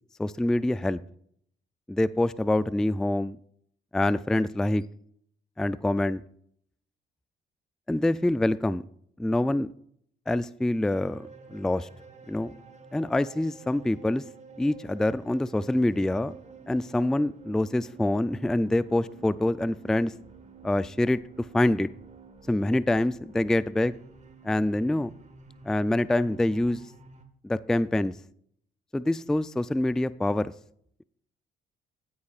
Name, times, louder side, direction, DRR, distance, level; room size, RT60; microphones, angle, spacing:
voice 1, 0.2-1.0 1.9-3.4 3.9-4.8 5.6-6.2 7.9-8.8 9.2-9.7 10.3-11.9 12.3-12.5 12.9-14.2 14.6-16.3 16.7-20.1 20.6-21.2 21.5-21.9 22.5-23.9 24.4-25.1 25.7-26.8 27.4-28.1 28.9-30.5, left 1 dB, 5° left, 15 dB, 0.3 m, -25 dB
sound 1, 10.9-27.2, right 5 dB, 35° right, 1.5 m, -50 dB
15.0 x 9.7 x 2.4 m, 0.65 s
cardioid pair, 90°, 20 cm